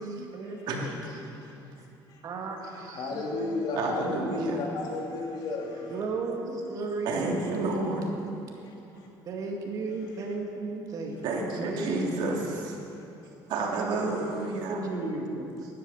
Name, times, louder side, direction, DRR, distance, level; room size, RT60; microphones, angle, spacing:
voice 1, 0.0-1.0 1.9-2.0 2.2-4.4 5.9-7.7 9.3-11.4 11.6-12.6 13.8-14.3 14.6-15.7, right 3 dB, 45° right, 2 dB, 2.1 m, -35 dB
voice 2, 0.7-1.5 3.8-4.6 7.0-8.0 8.9-9.1 11.2-12.7 13.5-14.9, right 3 dB, 65° right, 0 dB, 2.7 m, -31 dB
voice 3, 2.6-5.7, left 3 dB, 60° left, 0 dB, 2.8 m, -33 dB
16.0 x 11.5 x 7.3 m, 2.7 s
cardioid pair, 155°, 8 cm